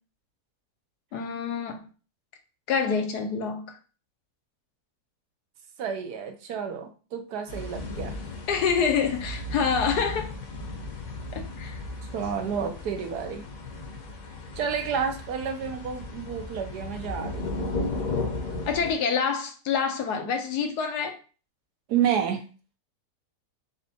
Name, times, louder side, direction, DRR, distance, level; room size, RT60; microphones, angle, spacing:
voice 1, 1.1-1.9 2.7-3.8 8.5-10.3 11.3-11.8 18.7-21.2, left 6 dB, 75° left, 1.3 m, -27 dB
voice 2, 5.8-8.1 12.1-13.4 14.6-17.5 21.9-22.4, right 7 dB, 75° right, 1.3 m, -30 dB
sound 1, 7.5-18.9, left 2 dB, 60° left, 1.3 m, -35 dB
4.4 x 4.1 x 2.8 m
omnidirectional pair, 1.8 m